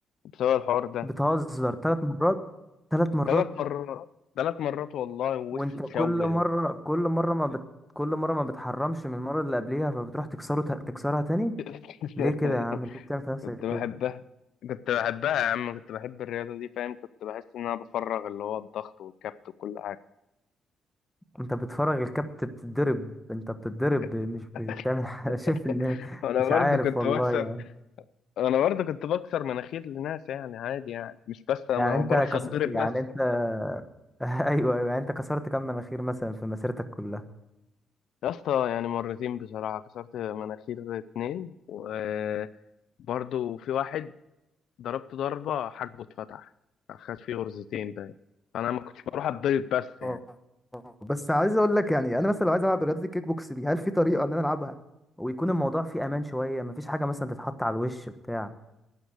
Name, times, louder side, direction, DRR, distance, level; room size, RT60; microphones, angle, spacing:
voice 1, 0.4-1.1 3.3-4.1 4.4-5.6 5.9-6.4 11.7-12.6 13.4-14.2 14.6-19.3 19.6-20.0 24.7-24.9 25.9-27.5 28.4-32.9 38.2-42.5 43.1-44.1 44.8-46.5 46.9-48.1 48.5-50.2, left 10 dB, 75° left, 16 dB, 0.5 m, -30 dB
voice 2, 1.0-2.4 2.9-3.4 5.5-7.6 7.9-11.5 12.2-13.8 21.4-26.0 26.5-27.6 31.8-33.8 34.2-37.2 50.0-50.2 50.7-54.8 55.2-58.5, equal, 5° left, 9 dB, 1.2 m, -28 dB
11.5 x 9.3 x 6.4 m, 0.93 s
cardioid pair, 90°, 0 cm